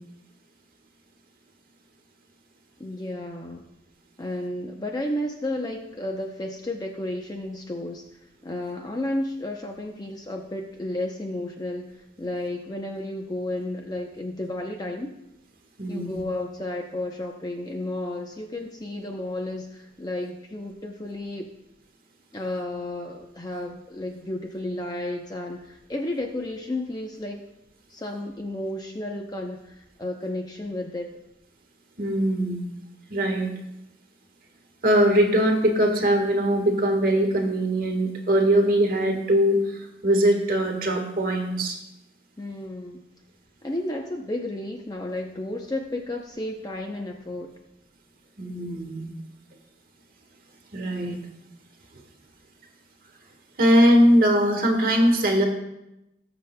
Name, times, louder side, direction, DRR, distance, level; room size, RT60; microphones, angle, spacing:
voice 1, 2.8-3.7 4.2-8.0 8.4-15.2 15.9-21.5 22.3-27.5 27.9-31.1 42.4-43.1 43.6-47.6, left 1 dB, 20° left, 2 dB, 0.6 m, -32 dB
voice 2, 15.8-16.2 32.0-32.6 33.1-33.5 34.8-41.8 48.4-49.1 50.7-51.2 53.6-55.5, equal, 55° right, 2 dB, 1.4 m, -21 dB
19.0 x 6.9 x 2.2 m, 0.89 s
head